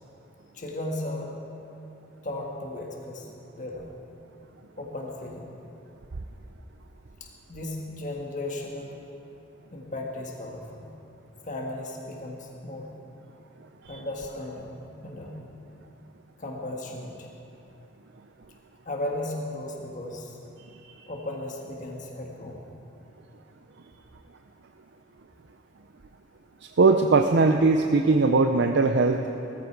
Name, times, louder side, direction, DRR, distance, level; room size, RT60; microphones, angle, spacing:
voice 1, 0.5-1.4 2.2-3.9 4.8-5.6 7.2-9.0 9.7-10.9 11.4-12.9 13.9-15.4 16.4-17.3 18.8-20.4 21.1-22.6, left 1 dB, 40° left, 0 dB, 1.5 m, -36 dB
voice 2, 26.8-29.2, right 3 dB, 65° right, 5 dB, 0.6 m, -20 dB
18.0 x 15.0 x 4.7 m, 2.8 s
head